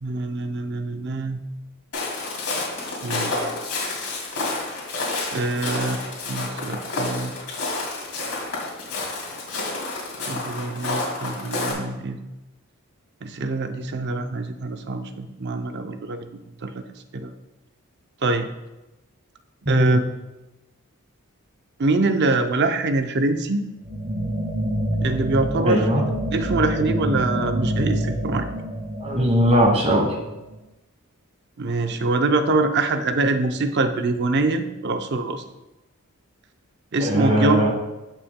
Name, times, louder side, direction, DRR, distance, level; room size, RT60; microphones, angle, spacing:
voice 1, 0.0-1.4 3.0-3.5 5.3-6.0 6.3-7.3 10.3-12.2 13.2-16.8 17.1-17.3 18.2-18.5 19.7-20.0 21.8-23.7 25.0-25.9 26.3-28.5 31.6-35.4 36.9-37.7, right 3 dB, 50° right, 8 dB, 0.6 m, -24 dB
Walk footsteps, 1.9-11.7, left 2 dB, 80° left, 2.4 m, -29 dB
voice 2, 19.6-20.0 25.5-26.0 29.0-30.1 37.0-37.7, equal, 30° right, 0 dB, 1.4 m, -19 dB
sound 1, 23.8-30.6, right 1 dB, 70° right, 2.1 m, -27 dB
14.5 x 5.7 x 2.2 m, 1.0 s
head